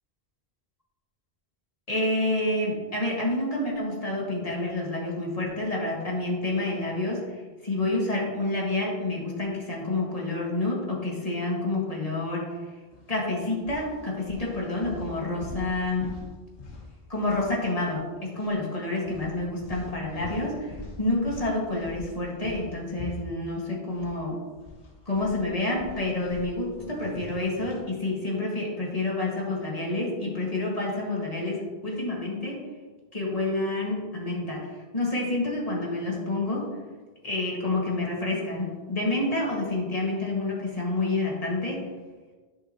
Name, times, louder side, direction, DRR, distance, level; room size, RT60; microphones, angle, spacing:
voice 1, 1.9-12.6 13.1-16.1 17.1-24.4 25.1-32.7 33.1-36.8 37.2-41.9, left 2 dB, 35° left, -3 dB, 1.9 m, -28 dB
sound 1, 12.9-13.1 13.6-18.0 18.3-18.5 19.0-24.2 24.5-27.9, left 3 dB, 85° left, 1.6 m, -43 dB
11.0 x 5.8 x 2.9 m, 1.4 s
omnidirectional pair, 1.1 m